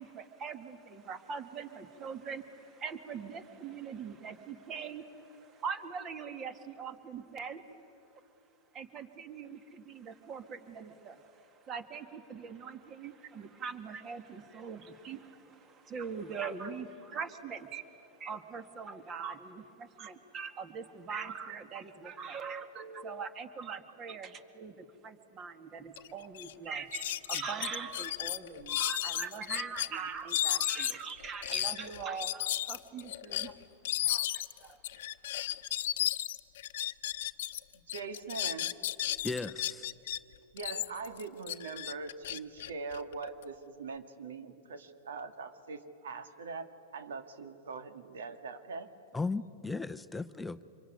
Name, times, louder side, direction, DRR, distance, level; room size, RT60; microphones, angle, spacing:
voice 1, 0.0-7.6 8.7-33.5 34.0-34.8, right 6 dB, 30° right, 10 dB, 2.1 m, -42 dB
sound 1, 26.0-26.1 26.3-26.5 26.9-29.9 30.3-37.6 37.9-40.2 40.6-43.4, left 14 dB, 70° left, 0.8 m, -34 dB
voice 2, 37.9-38.7 40.5-48.9, right 4 dB, 85° right, 9 dB, 2.0 m, -42 dB
voice 3, 39.2-39.9 49.1-50.6, left 3 dB, 5° left, 9 dB, 0.7 m, -36 dB
26.0 x 23.0 x 9.6 m, 2.9 s
hypercardioid pair, 125°, 0 cm